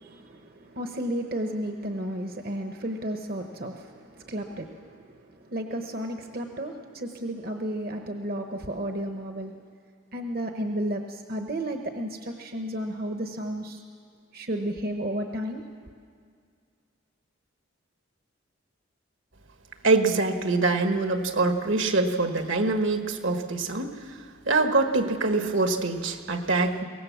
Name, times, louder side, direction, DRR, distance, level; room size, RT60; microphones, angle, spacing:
voice 1, 0.0-9.6 10.1-13.8 14.3-15.6, right 1 dB, 45° right, 4 dB, 1.0 m, -33 dB
voice 2, 19.8-23.9 24.4-26.8, right 3 dB, 70° right, 6 dB, 1.4 m, -24 dB
23.0 x 18.0 x 7.2 m, 2.2 s
head